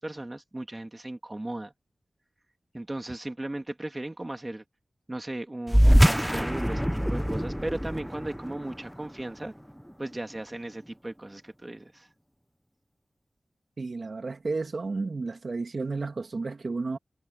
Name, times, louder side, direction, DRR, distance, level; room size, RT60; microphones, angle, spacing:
voice 1, 0.0-1.7 2.7-4.6 5.1-9.5 10.0-12.1, right 1 dB, 25° right, 2.7 m, -36 dB
sound 1, 5.7-10.6, equal, ahead, 0.8 m, -24 dB
voice 2, 13.8-17.0, right 3 dB, 60° right, 2.5 m, -32 dB
wide cardioid pair, 65°, 0 cm